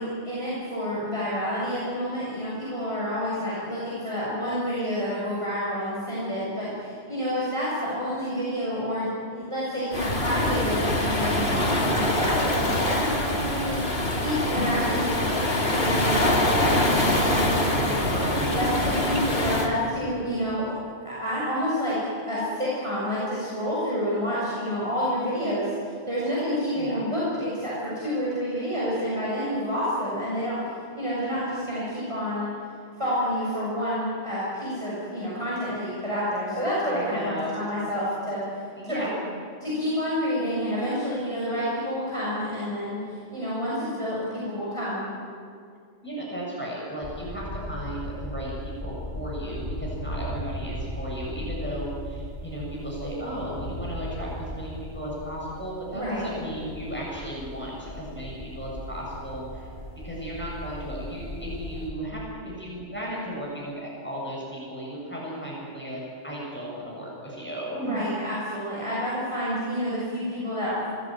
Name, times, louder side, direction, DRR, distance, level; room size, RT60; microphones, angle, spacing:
voice 1, 0.0-17.7 18.5-20.8 21.0-30.6 31.0-32.5 33.0-38.4 38.9-39.0 39.6-43.0 43.3-45.1 53.1-53.2 55.9-56.3 67.8-70.9, equal, 25° right, -8 dB, 7.0 m, -29 dB
Waves surf, 9.9-19.7, left 1 dB, 60° left, 3.1 m, -24 dB
voice 2, 17.5-19.1 26.7-27.0 36.9-37.6 38.8-39.1 46.0-59.7 60.0-68.0, right 1 dB, 10° left, -5 dB, 7.9 m, -35 dB
sound 1, 47.0-61.9, left 1 dB, 35° left, 6.4 m, -37 dB
26.0 x 20.0 x 9.3 m, 2.3 s
omnidirectional pair, 1.2 m